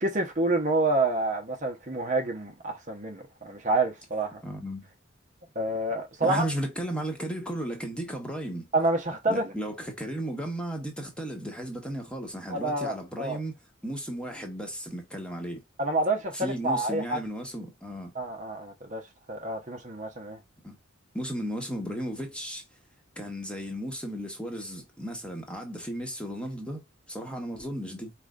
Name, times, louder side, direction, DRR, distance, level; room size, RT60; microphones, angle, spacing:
voice 1, 0.0-4.4 5.5-6.4 8.7-9.4 12.5-13.4 15.8-17.2 18.1-19.0 19.3-20.4, right 2 dB, 35° right, 0.9 m, -28 dB
voice 2, 4.4-4.9 6.2-8.7 9.3-13.5 13.8-15.6 16.3-18.1 20.6-20.8 21.1-22.6 23.2-26.8 27.1-28.1, right 1 dB, 5° left, 1.2 m, -35 dB
4.9 x 3.3 x 2.4 m
head